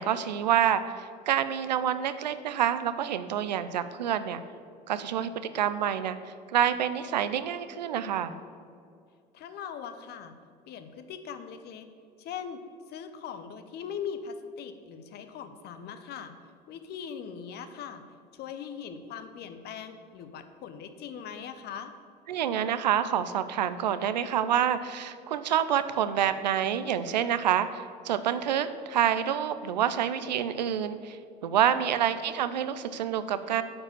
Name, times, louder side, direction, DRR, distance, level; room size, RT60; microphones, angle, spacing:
voice 1, 0.0-4.4 4.9-6.2 6.5-8.4 22.3-33.6, right 9 dB, 85° right, 12 dB, 0.5 m, -27 dB
voice 2, 5.1-5.4 9.3-10.3 10.7-11.9 12.2-12.6 12.9-16.3 16.7-18.0 18.3-21.9 31.7-32.1, left 7 dB, 50° left, 9 dB, 0.9 m, -40 dB
8.5 x 4.8 x 6.7 m, 2.3 s
hypercardioid pair, 70°, 21 cm